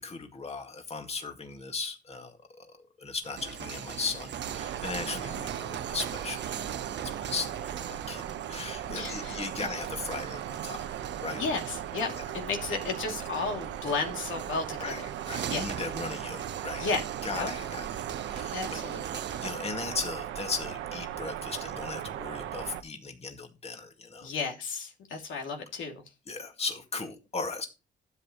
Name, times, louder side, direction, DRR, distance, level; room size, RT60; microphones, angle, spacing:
voice 1, 0.0-2.7 3.0-6.5 6.9-10.8 11.2-11.4 12.1-12.3 14.8-15.0 15.3-16.9 17.2-18.8 19.4-24.3 26.3-27.7, left 4 dB, 30° left, 4 dB, 2.1 m, -37 dB
sound 1, 3.2-19.7, right 8 dB, 65° right, 1.2 m, -41 dB
sound 2, 4.4-22.8, right 11 dB, 85° right, 1.1 m, -38 dB
voice 2, 8.9-9.4 11.4-15.1 15.5-15.6 16.8-17.0 17.3-17.5 18.5-19.2 24.2-26.0, left 4 dB, 80° left, 2 dB, 2.7 m, -33 dB
12.0 x 8.3 x 3.1 m, 0.27 s
cardioid pair, 90°, 20 cm